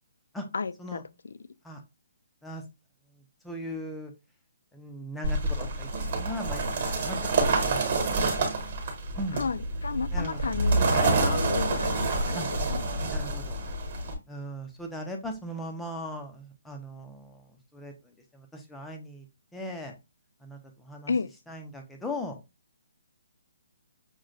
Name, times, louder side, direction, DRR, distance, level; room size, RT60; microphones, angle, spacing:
voice 1, 0.5-1.0 9.3-12.4 12.7-12.8 21.1-21.3, left 4 dB, 75° left, 0.4 m, -32 dB
voice 2, 3.4-4.1 4.7-8.3 9.1-9.5 10.1-10.5 12.3-12.5 13.0-13.6 14.3-19.3 19.5-20.0 20.4-21.1 21.5-22.4, equal, 5° left, 0.4 m, -39 dB
sound 1, 5.2-14.1, right 2 dB, 35° right, 1.1 m, -27 dB
6.1 x 2.1 x 2.4 m
hypercardioid pair, 180°, 0 cm